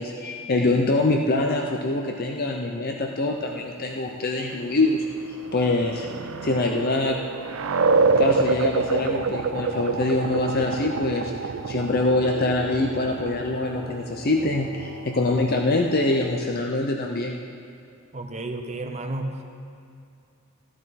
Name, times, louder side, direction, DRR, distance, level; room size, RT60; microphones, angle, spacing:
voice 1, 0.0-5.0 5.5-6.1 6.4-7.2 8.2-17.4, left 2 dB, 45° left, 2 dB, 0.6 m, -24 dB
sound 1, 5.1-16.5, right 4 dB, 70° right, 0.4 m, -27 dB
voice 2, 18.1-19.4, right 2 dB, 30° right, 4 dB, 0.8 m, -32 dB
14.5 x 11.0 x 4.1 m, 2.4 s
head